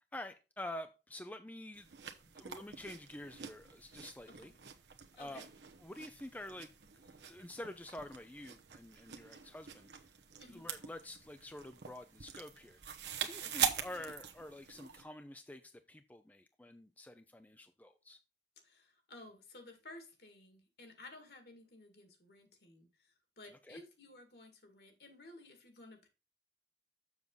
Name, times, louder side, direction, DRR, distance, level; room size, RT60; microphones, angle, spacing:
voice 1, 0.0-1.9 2.3-4.5 5.1-5.5 5.8-6.7 7.0-9.9 10.5-12.8 13.2-18.2 23.7-23.8, left 1 dB, 10° left, 0.4 m, -48 dB
sound 1, 1.7-15.0, right 8 dB, 80° right, 1.0 m, -43 dB
voice 2, 5.1-5.5 10.4-10.6 13.4-13.7 18.6-26.1, left 2 dB, 60° left, 2.2 m, -55 dB
7.1 x 7.0 x 3.9 m
head